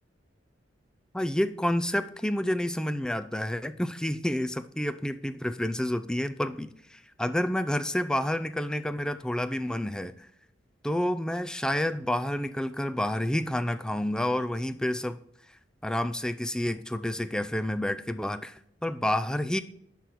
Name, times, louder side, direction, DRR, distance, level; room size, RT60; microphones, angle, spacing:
voice 1, 1.1-10.3 10.8-15.2 15.8-19.6, left 1 dB, 5° left, 12 dB, 0.3 m, -29 dB
10.5 x 3.9 x 4.1 m, 0.70 s
head